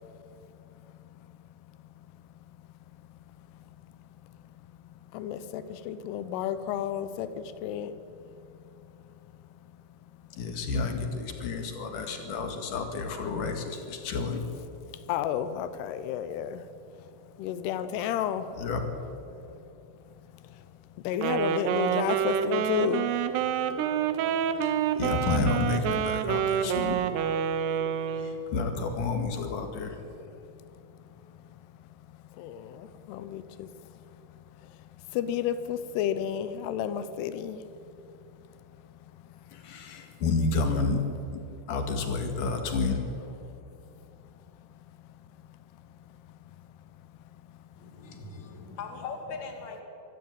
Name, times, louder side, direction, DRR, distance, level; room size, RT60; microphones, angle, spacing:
voice 1, 0.0-10.5 14.0-14.1 14.7-18.7 19.3-19.5 20.1-25.0 27.4-28.5 30.1-40.2 43.4-43.7 44.1-46.7 47.1-48.3 48.7-48.8, left 9 dB, 90° left, 12 dB, 2.9 m, -36 dB
voice 2, 10.4-14.4 18.6-18.8 24.5-27.0 28.2-30.0 39.5-41.0 41.3-41.4 41.7-43.0, left 4 dB, 60° left, 5 dB, 3.3 m, -30 dB
Wind instrument woodwind instrument, 21.1-28.4, right 8 dB, 90° right, 3.1 m, -28 dB
voice 3, 47.8-49.8, left 5 dB, 35° left, 3 dB, 2.6 m, -40 dB
24.5 x 13.0 x 8.8 m, 2.7 s
omnidirectional pair, 4.6 m